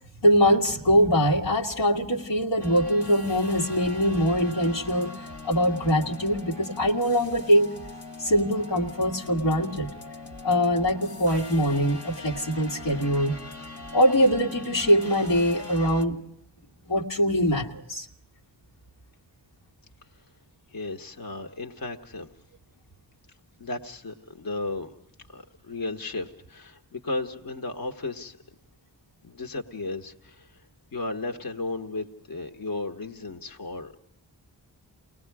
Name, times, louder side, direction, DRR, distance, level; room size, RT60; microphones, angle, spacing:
voice 1, 0.2-5.1 5.4-7.7 8.2-9.9 10.4-13.4 13.9-16.2 16.9-18.1, equal, 90° left, -2 dB, 2.0 m, -23 dB
sound 1, 2.6-16.1, left 2 dB, 70° left, 1.9 m, -41 dB
voice 2, 20.7-22.3 23.6-24.9 25.3-28.4 29.2-30.6 30.9-34.0, left 2 dB, 55° left, 4 dB, 1.3 m, -34 dB
29.0 x 19.5 x 4.8 m, 0.76 s
cardioid pair, 50°, 42 cm